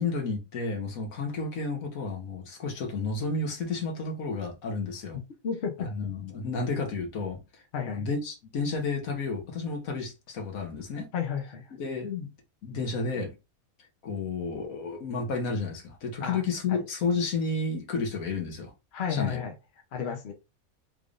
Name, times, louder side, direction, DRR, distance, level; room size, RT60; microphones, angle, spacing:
voice 1, 0.0-5.2 5.8-11.1 11.7-12.3 12.6-13.3 14.0-18.7 19.1-19.4, left 4 dB, 75° left, 1.5 m, -31 dB
voice 2, 5.4-5.9 7.7-8.0 11.1-11.7 16.2-16.4 16.7-16.8 18.9-19.5 19.9-20.3, left 7 dB, 55° left, 0.9 m, -32 dB
3.7 x 3.3 x 2.5 m
omnidirectional pair, 1.5 m